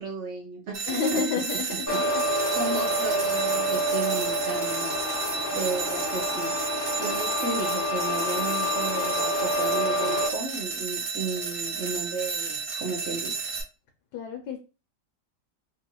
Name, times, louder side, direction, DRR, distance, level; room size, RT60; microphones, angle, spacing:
voice 1, 0.0-1.2 2.5-5.0 5.5-6.7 7.0-13.4, right 3 dB, 60° right, 0 dB, 0.8 m, -33 dB
sound 1, 0.7-13.6, right 5 dB, 80° right, 0.5 m, -32 dB
voice 2, 0.9-2.2 14.1-14.6, left 5 dB, 75° left, 2 dB, 1.1 m, -30 dB
sound 2, 1.9-10.3, equal, 20° left, 0.4 m, -28 dB
3.0 x 2.4 x 2.9 m, 0.31 s
omnidirectional pair, 1.8 m